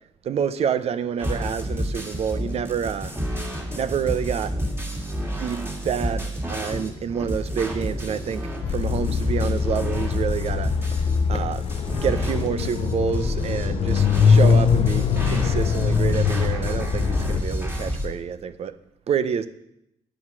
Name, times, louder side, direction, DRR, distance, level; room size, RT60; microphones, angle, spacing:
voice 1, 0.2-3.1 3.7-4.6 5.4-11.0 11.3-11.6 12.0-18.7 19.1-19.5, right 7 dB, 60° right, 0.7 m, -28 dB
sound 1, 1.2-18.1, equal, 20° right, 2.3 m, -30 dB
sound 2, 8.6-17.4, left 6 dB, 55° left, 0.6 m, -22 dB
9.5 x 7.8 x 6.1 m
cardioid pair, 110°, 12 cm